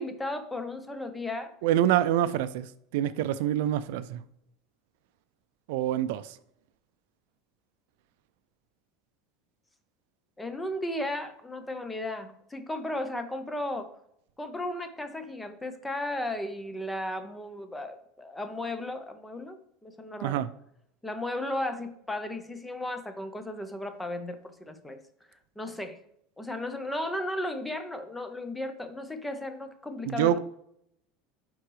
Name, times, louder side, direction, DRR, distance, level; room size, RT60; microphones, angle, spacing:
voice 1, 0.0-1.5 10.4-13.9 14.4-20.4 21.0-25.0 25.3-26.0 26.4-30.4, left 1 dB, 5° left, 0.6 m, -35 dB
voice 2, 1.6-2.7 2.9-4.2 5.7-6.4 20.2-20.5 30.0-30.4, right 11 dB, 75° right, 0.3 m, -26 dB
9.3 x 3.7 x 3.2 m
supercardioid pair, 150°, 0 cm